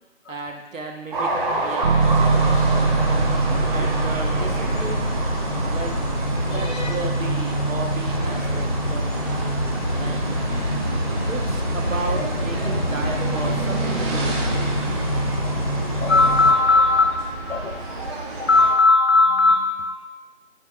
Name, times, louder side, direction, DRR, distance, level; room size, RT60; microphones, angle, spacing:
voice 1, 0.3-1.3 1.6-2.7 3.7-5.1 5.7-6.0 6.4-9.4 9.9-10.2 11.3-14.6, right 3 dB, 85° right, 2 dB, 1.3 m, -34 dB
sound 1, 1.1-18.7, right 2 dB, 40° right, 2.3 m, -30 dB
sound 2, 1.8-12.4, right 4 dB, 55° right, 1.3 m, -26 dB
sound 3, 2.0-16.5, equal, 30° left, 0.5 m, -25 dB
voice 2, 6.4-6.9 16.0-17.1 17.4-18.1 18.4-20.1, left 3 dB, 75° left, 5 dB, 0.7 m, -18 dB
11.5 x 4.4 x 2.4 m, 1.1 s
figure-of-eight pair, 170°, 38 cm